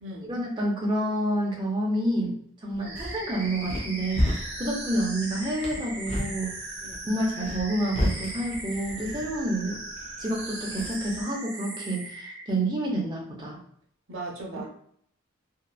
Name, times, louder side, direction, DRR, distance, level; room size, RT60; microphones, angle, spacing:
voice 1, 0.2-6.6 7.1-9.8 10.2-13.6, right 1 dB, 20° right, -2 dB, 0.5 m, -29 dB
sound 1, 2.7-11.2, left 1 dB, 30° left, 0.5 m, -34 dB
sound 2, 2.8-12.5, right 2 dB, 50° right, 0.9 m, -38 dB
voice 2, 14.1-14.7, right 2 dB, 70° right, 0 dB, 0.6 m, -37 dB
2.7 x 2.2 x 2.2 m, 0.66 s
head